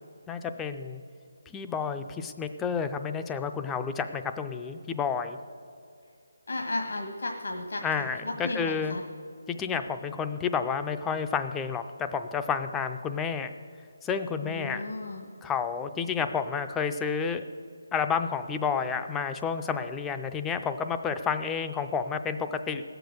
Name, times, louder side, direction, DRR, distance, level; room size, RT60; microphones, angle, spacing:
voice 1, 0.3-1.0 1.5-5.4 7.8-9.0 9.5-13.5 14.0-14.8 15.4-17.4 17.9-22.8, left 6 dB, 5° left, 8 dB, 0.3 m, -30 dB
voice 2, 6.5-9.0 14.4-15.3, left 2 dB, 80° left, 3 dB, 1.3 m, -34 dB
16.5 x 6.8 x 6.4 m, 2.4 s
hypercardioid pair, 175°, 0 cm